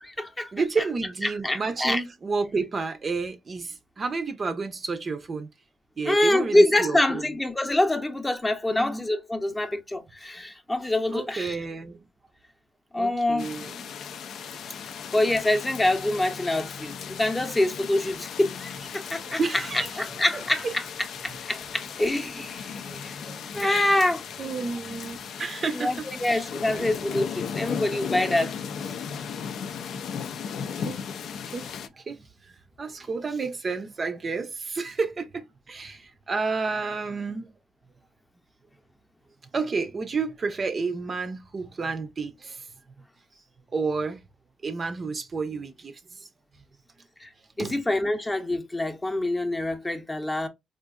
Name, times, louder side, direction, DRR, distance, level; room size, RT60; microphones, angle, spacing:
voice 1, 0.0-0.5 1.2-2.0 6.1-11.6 12.9-13.5 15.1-19.4 20.0-20.8 21.2-23.2 23.5-24.2 25.7-28.5 47.2-47.3 47.6-50.5, left 1 dB, 15° left, 0.7 m, -25 dB
voice 2, 0.5-5.5 6.0-7.2 8.7-9.0 11.1-12.0 13.0-13.8 19.1-20.7 22.8-24.1 24.4-27.2 30.8-31.0 31.5-31.7 32.0-37.5 39.5-42.7 43.7-44.2 44.6-46.3 47.6-47.8, right 4 dB, 40° right, 0.5 m, -31 dB
sound 1, 13.4-31.9, left 7 dB, 70° left, 0.4 m, -36 dB
3.6 x 2.4 x 2.3 m
cardioid pair, 90°, 0 cm